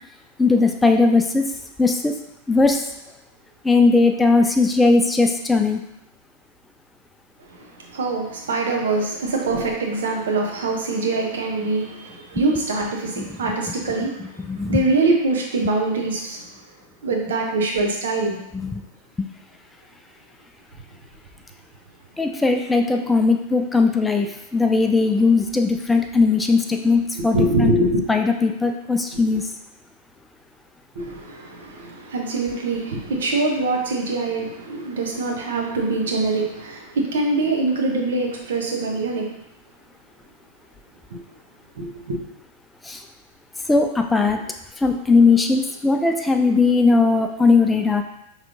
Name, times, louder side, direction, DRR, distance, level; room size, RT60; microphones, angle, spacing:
voice 1, 0.4-1.5 1.8-2.2 2.5-2.8 3.6-5.8 13.2-13.3 14.5-14.8 18.5-18.8 19.2-19.3 22.2-27.7 28.1-29.5 42.8-43.0 43.7-44.4 44.8-48.0, left 3 dB, 10° left, 4 dB, 0.3 m, -18 dB
voice 2, 7.5-16.4 17.0-18.4 27.1-28.2 29.1-29.2 30.9-39.3 41.1-41.2 41.8-42.2, right 2 dB, 60° right, 0 dB, 0.9 m, -24 dB
5.7 x 3.2 x 2.5 m, 0.82 s
figure-of-eight pair, 90°, 0 cm